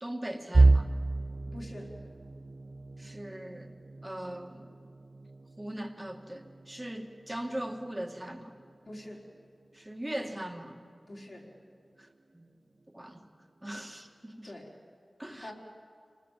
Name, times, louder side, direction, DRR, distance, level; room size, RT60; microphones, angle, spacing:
voice 1, 0.0-0.9 3.0-3.7 4.0-4.6 5.6-8.5 9.7-10.8 12.0-12.1 12.3-12.5 12.9-13.2 13.6-14.5 15.2-15.5, right 1 dB, 15° right, 4 dB, 2.1 m, -39 dB
sound 1, 0.5-12.4 12.8-13.1 13.4-13.6 14.5-14.9, right 3 dB, 50° right, 0.6 m, -32 dB
voice 2, 1.5-1.9 8.9-9.2 11.1-11.5 14.4-14.7 15.3-15.5, left 1 dB, 50° left, -1 dB, 4.6 m, -44 dB
27.5 x 20.0 x 7.6 m, 2.2 s
wide cardioid pair, 75°, 0 cm